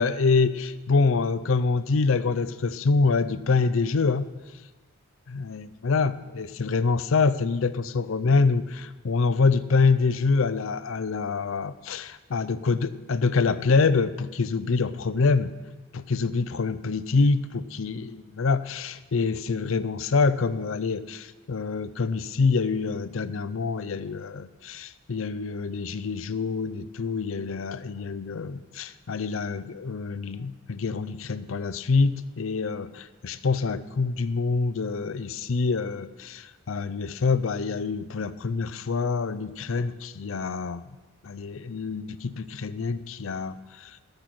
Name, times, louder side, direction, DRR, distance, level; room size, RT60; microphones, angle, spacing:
voice 1, 0.0-4.3 5.3-15.5 15.9-40.8 41.2-44.0, left 4 dB, 70° left, 14 dB, 0.5 m, -26 dB
14.0 x 6.6 x 6.0 m, 1.2 s
head